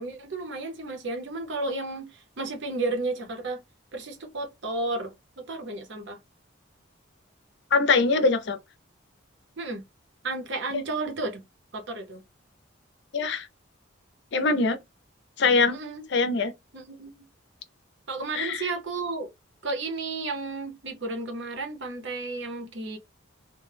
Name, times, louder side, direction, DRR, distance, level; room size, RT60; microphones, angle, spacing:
voice 1, 0.0-3.6 3.9-6.2 9.6-9.8 10.2-11.4 11.7-12.2 15.7-16.0 16.7-17.2 18.1-19.3 19.6-23.0, right 3 dB, 60° right, 0.7 m, -33 dB
voice 2, 7.7-8.6 10.7-10.8 13.1-13.5 14.3-14.8 15.4-15.8 16.1-16.5 18.3-18.7, left 4 dB, 55° left, 0.5 m, -22 dB
2.2 x 2.1 x 3.2 m
head